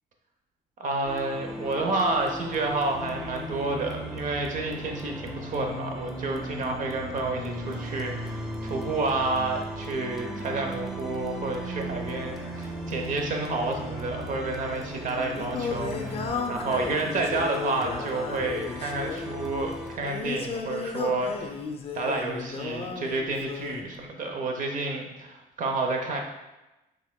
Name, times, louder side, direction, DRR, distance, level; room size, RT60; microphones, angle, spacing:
voice 1, 0.8-21.5 21.9-26.2, right 3 dB, 50° right, 3 dB, 0.8 m, -30 dB
sound 1, 1.0-20.0, equal, ahead, 0.7 m, -40 dB
sound 2, 2.9-16.3, equal, 20° right, 1.2 m, -38 dB
Singing, 14.9-23.9, left 5 dB, 35° left, 0.5 m, -34 dB
5.6 x 3.5 x 2.2 m, 1.0 s
cardioid pair, 110°, 17 cm